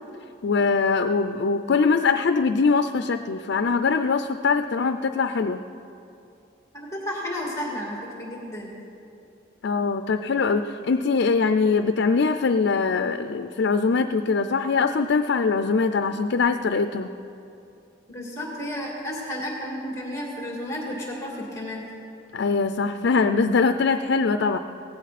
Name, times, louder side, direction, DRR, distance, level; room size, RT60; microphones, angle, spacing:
voice 1, 0.4-5.6 9.6-17.1 22.3-24.6, left 4 dB, 85° left, 8 dB, 0.5 m, -22 dB
voice 2, 6.7-8.7 18.1-21.8, left 1 dB, 15° left, -2 dB, 2.2 m, -32 dB
18.0 x 16.0 x 4.2 m, 2.7 s
head